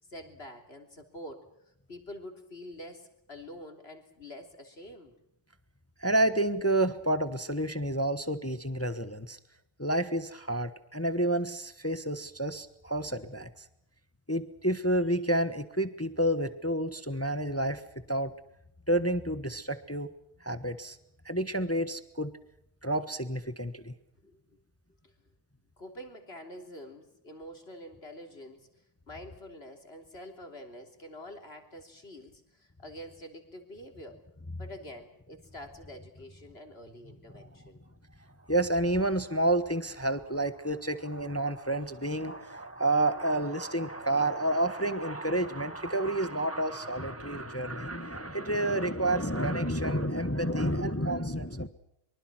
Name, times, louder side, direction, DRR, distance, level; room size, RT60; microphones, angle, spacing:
voice 1, 0.0-5.1 24.2-24.6 25.0-25.1 25.8-34.2 34.6-37.8, left 1 dB, 25° left, 5 dB, 3.4 m, -47 dB
voice 2, 6.0-9.4 9.8-13.6 14.3-17.8 18.1-18.3 18.9-20.1 20.4-21.0 21.2-22.3 22.8-23.9 37.3-37.5 38.5-51.7, right 1 dB, 10° left, 12 dB, 0.6 m, -29 dB
24.5 x 24.0 x 6.1 m, 0.80 s
omnidirectional pair, 2.3 m